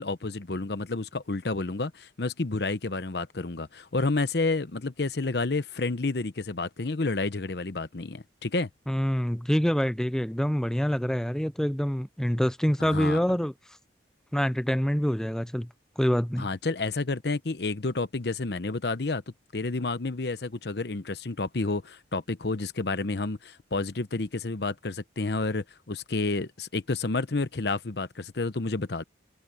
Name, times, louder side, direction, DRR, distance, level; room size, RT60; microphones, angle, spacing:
voice 1, 0.0-8.7 12.8-13.2 16.4-19.2 19.5-29.0, left 3 dB, 65° left, 0.9 m, -30 dB
voice 2, 8.9-13.5 14.3-15.7 16.0-16.5, equal, 5° left, 0.5 m, -26 dB
open air
head